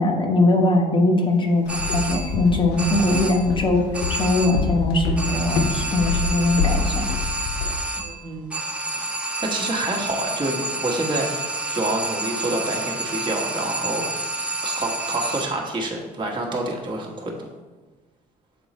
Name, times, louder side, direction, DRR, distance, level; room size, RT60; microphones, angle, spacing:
voice 1, 0.0-3.8 4.1-7.1, left 2 dB, 30° left, 2 dB, 1.0 m, -21 dB
Walk footsteps, 1.7-7.8, left 4 dB, 75° left, 0.7 m, -27 dB
sound 1, 1.7-2.5 2.8-3.6 3.9-4.8 5.2-15.7, right 2 dB, 5° right, 0.6 m, -29 dB
voice 2, 8.0-8.6 9.4-14.3 14.6-17.5, right 2 dB, 30° right, -1 dB, 1.2 m, -28 dB
7.2 x 3.8 x 4.2 m, 1.2 s
cardioid pair, 110°, 17 cm